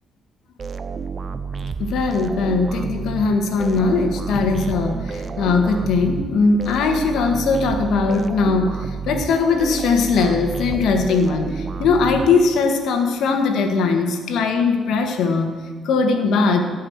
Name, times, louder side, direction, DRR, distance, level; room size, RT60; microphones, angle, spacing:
sound 1, 0.6-12.8, right 5 dB, 40° right, 0.7 m, -30 dB
voice 1, 1.8-16.6, left 4 dB, 80° left, 5 dB, 1.6 m, -20 dB
16.0 x 5.6 x 8.0 m, 1.5 s
cardioid pair, 90°, 0 cm